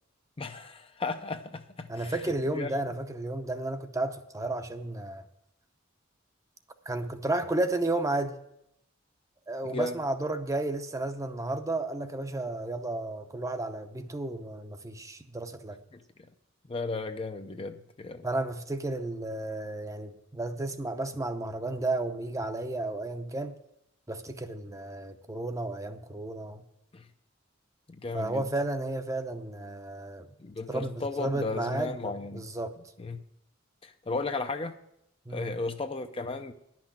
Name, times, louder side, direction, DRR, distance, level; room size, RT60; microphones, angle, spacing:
voice 1, 0.4-2.8 9.6-10.0 15.9-16.0 16.7-18.3 26.9-27.0 27.9-28.4 30.4-32.4 33.0-33.2 33.8-34.8 35.3-36.5, left 3 dB, 30° left, 0.5 m, -35 dB
voice 2, 1.9-5.2 6.9-8.4 9.5-15.8 18.2-23.6 24.1-26.6 28.1-30.3 30.7-32.8 35.3-35.6, right 2 dB, 15° right, 0.7 m, -32 dB
11.0 x 6.0 x 8.6 m
head